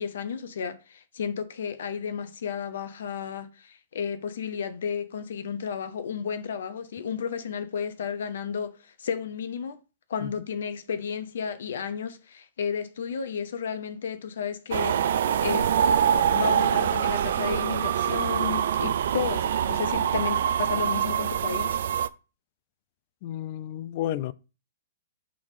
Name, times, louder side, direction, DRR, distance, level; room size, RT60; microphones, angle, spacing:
voice 1, 0.0-9.8 10.1-15.7 16.3-21.8, left 7 dB, 65° left, 1.0 m, -33 dB
sound 1, 14.7-22.1, right 9 dB, 60° right, 0.4 m, -24 dB
voice 2, 23.2-24.3, left 12 dB, 45° left, 0.5 m, -31 dB
6.1 x 3.5 x 4.9 m
figure-of-eight pair, 115°, 0 cm